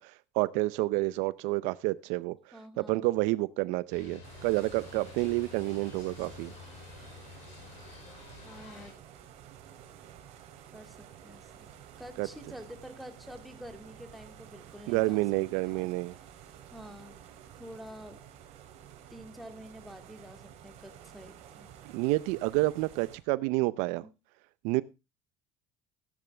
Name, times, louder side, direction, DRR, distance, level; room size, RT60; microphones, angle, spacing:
voice 1, 0.0-2.4 2.8-6.5 12.2-12.3 14.9-16.1 21.9-24.0 24.6-24.8, right 20 dB, 75° right, 18 dB, 0.6 m, -29 dB
voice 2, 2.5-3.1 8.4-9.0 10.7-11.7 12.0-15.2 15.5-15.9 16.7-17.1 17.6-18.2 19.1-21.7 24.0-24.1, equal, ahead, 6 dB, 2.1 m, -48 dB
sound 1, 3.9-8.9, left 7 dB, 65° left, 5.3 m, -49 dB
sound 2, 4.2-23.2, right 9 dB, 60° right, 3.1 m, -51 dB
14.5 x 10.0 x 3.3 m, 0.26 s
cardioid pair, 130°, 12 cm